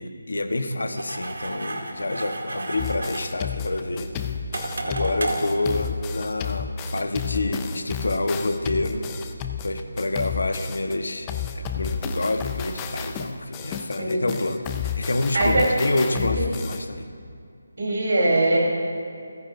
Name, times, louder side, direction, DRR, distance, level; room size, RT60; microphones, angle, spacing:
voice 1, 0.0-4.3 4.8-9.1 9.6-17.1, left 2 dB, 85° left, 7 dB, 1.2 m, -28 dB
sound 1, 1.0-6.5, right 2 dB, 90° right, 1.9 m, -33 dB
sound 2, 2.8-10.9 11.3-16.8, left 7 dB, 10° left, 0.3 m, -31 dB
voice 2, 15.3-15.7 16.4-16.5 17.8-18.6, right 2 dB, 60° right, -3 dB, 3.9 m, -21 dB
28.0 x 9.7 x 2.7 m, 2.4 s
figure-of-eight pair, 180°, 0 cm